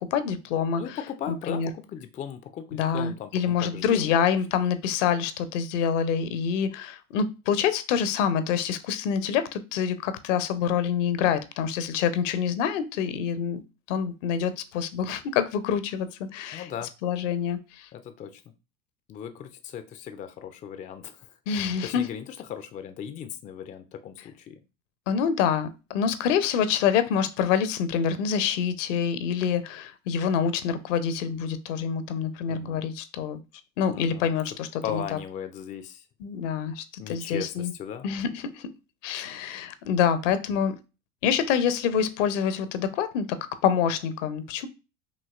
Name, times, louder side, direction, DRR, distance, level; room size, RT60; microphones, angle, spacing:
voice 1, 0.1-0.8 1.3-1.7 2.7-13.6 13.9-16.7 17.0-17.9 21.5-22.1 25.1-33.4 33.8-35.0 36.2-37.7 38.0-38.7 39.0-40.8 41.2-43.3 43.6-44.7, left 7 dB, 60° left, 12 dB, 0.7 m, -26 dB
voice 2, 0.8-4.2 16.5-16.9 17.9-18.4 19.1-24.6 32.5-32.8 33.9-34.3 34.8-36.0 37.0-38.1, left 9 dB, 20° left, 9 dB, 0.4 m, -37 dB
5.2 x 2.8 x 2.4 m, 0.29 s
figure-of-eight pair, 75°, 41 cm